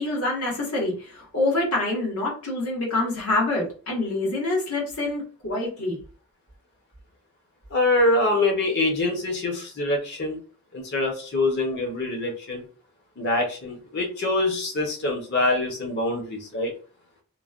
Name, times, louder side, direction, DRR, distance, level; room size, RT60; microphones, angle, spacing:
voice 1, 0.0-6.0, left 2 dB, 85° left, -3 dB, 1.3 m, -26 dB
voice 2, 7.7-10.4 10.7-12.6 13.2-16.7, left 2 dB, 50° left, 2 dB, 0.7 m, -24 dB
3.1 x 2.1 x 2.4 m, 0.38 s
head